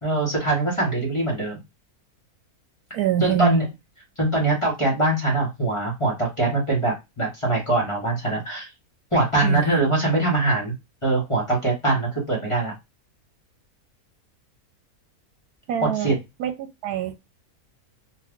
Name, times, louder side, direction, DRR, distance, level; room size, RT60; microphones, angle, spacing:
voice 1, 0.0-1.6 3.2-3.7 4.2-8.7 9.1-10.7 11.0-12.7 15.8-16.2, right 2 dB, 25° left, 1.0 m, -23 dB
voice 2, 2.9-3.6 9.4-9.6 15.7-16.1 16.4-17.2, right 9 dB, 85° right, 1.2 m, -24 dB
2.5 x 2.4 x 3.5 m
omnidirectional pair, 1.6 m